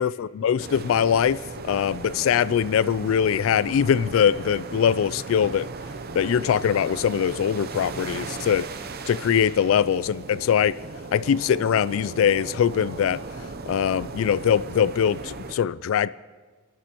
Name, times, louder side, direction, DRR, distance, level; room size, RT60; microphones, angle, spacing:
voice 1, 0.0-1.4 1.6-5.7 6.1-8.7 9.1-10.8 11.1-13.2 13.7-16.1, left 8 dB, 70° left, 18 dB, 0.3 m, -22 dB
sound 1, 0.6-15.5, right 3 dB, 45° right, 0.6 m, -37 dB
30.0 x 11.5 x 3.0 m, 1.4 s
head